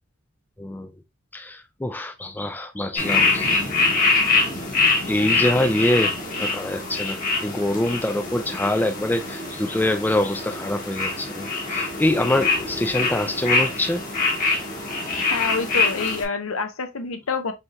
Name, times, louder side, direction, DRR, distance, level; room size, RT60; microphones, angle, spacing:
voice 1, 0.6-0.9 1.3-3.6 5.1-14.0, left 1 dB, 10° left, 0.4 m, -25 dB
sound 1, 3.0-16.2, left 3 dB, 40° left, 1.4 m, -24 dB
voice 2, 15.3-17.5, left 4 dB, 70° left, 0.8 m, -27 dB
5.2 x 3.2 x 2.3 m
head